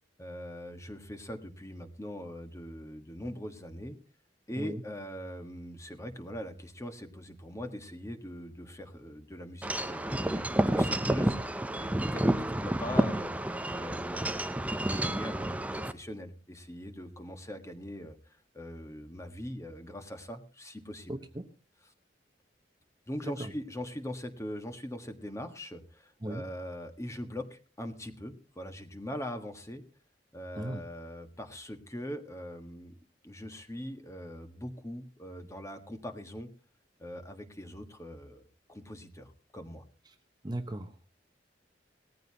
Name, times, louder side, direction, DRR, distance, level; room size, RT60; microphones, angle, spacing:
voice 1, 0.2-4.0 4.5-13.3 13.7-18.2 18.5-21.2 23.1-29.8 30.3-32.9 33.2-36.5 37.0-38.4 38.7-39.8, equal, 15° left, 7 dB, 1.5 m, -41 dB
Wind chime / Wind, 9.6-15.9, right 1 dB, 10° right, 0.6 m, -30 dB
voice 2, 21.1-21.4 23.4-23.5 26.2-26.4 30.5-30.8 40.4-41.1, right 1 dB, 25° right, 7 dB, 1.0 m, -37 dB
19.0 x 14.5 x 2.9 m, 0.35 s
head